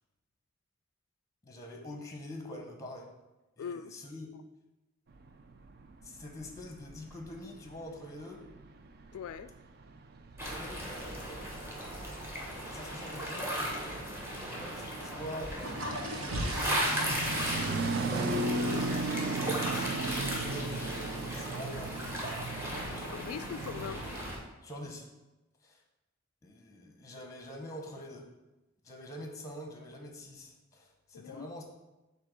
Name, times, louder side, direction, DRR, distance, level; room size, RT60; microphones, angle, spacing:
voice 1, 1.4-3.1 3.6-4.3 6.0-8.4 10.5-11.6 12.6-13.7 14.4-16.3 16.9-22.3 22.6-23.3 24.6-25.1 25.6-25.8 26.4-28.3 28.8-31.6, left 1 dB, 15° left, 0.9 m, -46 dB
voice 2, 3.6-3.9 9.1-9.6 22.6-22.7 23.1-24.1 31.1-31.6, left 7 dB, 85° left, 0.3 m, -41 dB
sound 1, 5.1-24.1, right 2 dB, 45° right, 0.4 m, -38 dB
sound 2, 10.4-24.4, equal, 10° right, 1.1 m, -37 dB
sound 3, 15.4-24.4, right 1 dB, 75° right, 1.1 m, -41 dB
8.1 x 2.9 x 6.1 m
head